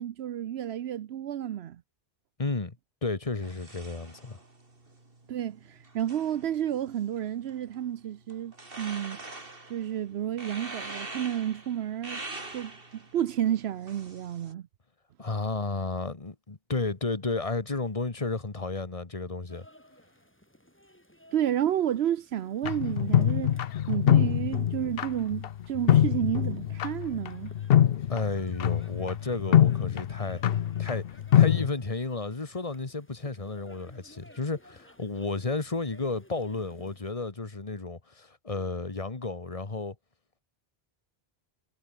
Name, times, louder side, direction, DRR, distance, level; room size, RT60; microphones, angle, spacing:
voice 1, 0.0-1.8 5.3-9.2 9.7-12.2 12.5-14.7 21.3-23.6 23.9-27.5, right 10 dB, 80° right, 0.9 m, -31 dB
voice 2, 2.4-2.8 3.0-4.4 15.2-19.6 28.1-30.4 30.8-31.0 31.3-39.9, left 3 dB, 35° left, 1.6 m, -32 dB
sound 1, 3.4-14.5, right 2 dB, 60° right, 3.4 m, -45 dB
sound 2, 19.5-37.1, equal, 10° left, 6.1 m, -57 dB
sound 3, 22.6-31.7, left 10 dB, 65° left, 0.8 m, -24 dB
omnidirectional pair, 1.1 m